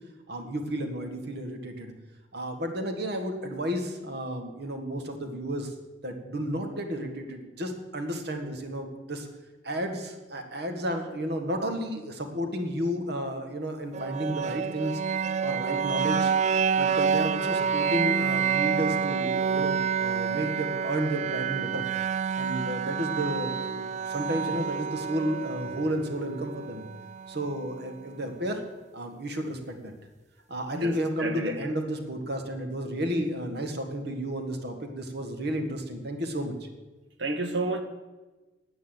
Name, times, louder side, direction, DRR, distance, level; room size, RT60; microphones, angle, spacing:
voice 1, 0.3-1.9 2.3-5.7 6.0-9.3 9.6-15.0 15.4-16.3 16.7-21.9 22.3-26.8 27.3-28.6 28.9-29.9 30.5-36.7, equal, 60° right, 1.6 m, -32 dB
sound 1, 13.9-27.9, right 6 dB, 40° right, 0.3 m, -28 dB
voice 2, 30.7-31.6 37.2-37.8, right 2 dB, 75° right, 1.5 m, -31 dB
9.6 x 9.5 x 7.8 m
head